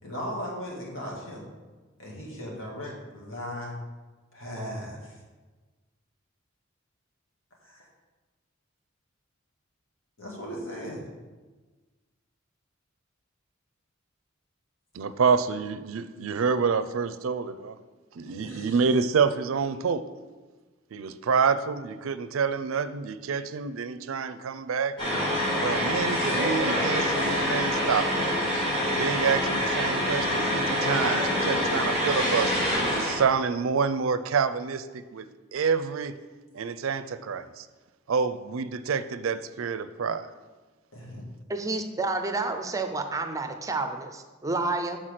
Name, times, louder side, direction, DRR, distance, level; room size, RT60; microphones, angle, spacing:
voice 1, 0.0-1.4 2.0-3.7 4.3-5.2 7.6-7.8 10.2-11.0 18.2-18.9 40.9-41.2, equal, 75° left, -3 dB, 2.0 m, -37 dB
voice 2, 14.9-17.7 18.2-20.0 20.9-24.9 25.5-28.1 28.9-35.2 35.5-36.1 36.5-37.6 38.1-40.3, right 5 dB, 75° right, 13 dB, 0.4 m, -27 dB
sound 1, 25.0-33.2, equal, 25° left, 2.3 m, -26 dB
voice 3, 41.5-45.0, right 3 dB, 15° right, 6 dB, 0.5 m, -29 dB
5.9 x 4.5 x 6.5 m, 1.3 s
head